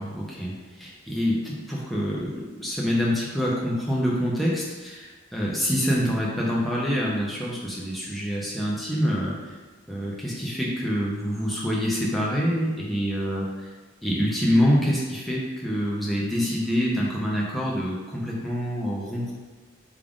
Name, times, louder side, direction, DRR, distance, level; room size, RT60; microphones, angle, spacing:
voice 1, 0.0-9.5 9.9-13.7 14.0-19.3, equal, ahead, -5 dB, 0.5 m, -26 dB
3.6 x 2.4 x 3.5 m, 1.3 s
head